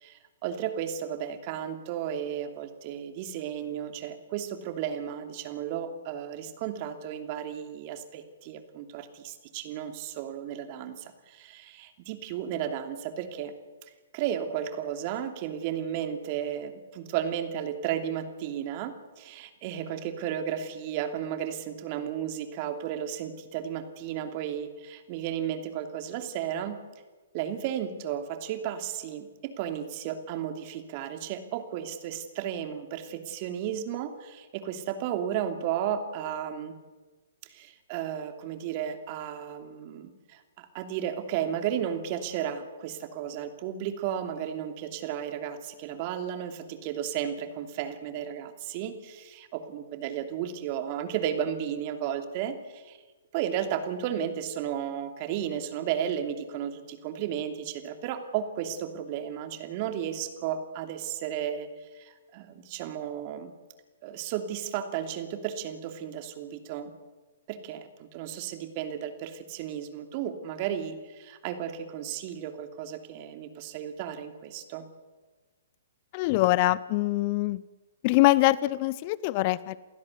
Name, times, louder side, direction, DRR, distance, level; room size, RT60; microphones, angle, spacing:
voice 1, 0.0-13.5 14.1-26.8 27.3-36.7 37.5-53.0 53.3-61.7 62.0-63.5 64.0-66.9 67.5-74.9, right 9 dB, 40° right, 7 dB, 2.9 m, -34 dB
voice 2, 76.1-77.6 78.0-79.8, left 19 dB, 40° left, 20 dB, 0.6 m, -23 dB
29.0 x 16.0 x 8.3 m, 1.3 s
figure-of-eight pair, 125°, 0 cm